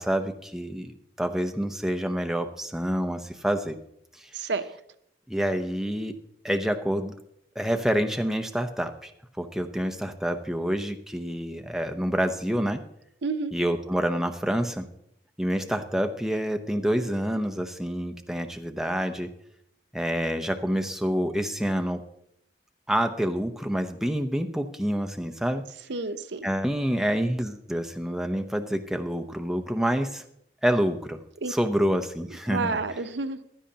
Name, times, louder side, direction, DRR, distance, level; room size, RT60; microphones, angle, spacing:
voice 1, 0.0-3.8 4.1-4.3 5.3-6.2 6.4-7.1 7.6-9.1 9.4-12.8 13.5-14.9 15.4-19.3 19.9-22.0 22.9-25.6 26.4-30.2 30.6-31.2 31.5-32.8, equal, 5° right, 6 dB, 0.7 m, -27 dB
voice 2, 4.3-4.8 13.2-13.5 25.9-26.5 31.4-31.5 32.5-33.4, right 3 dB, 85° right, 11 dB, 0.7 m, -29 dB
15.5 x 11.5 x 2.8 m, 0.73 s
head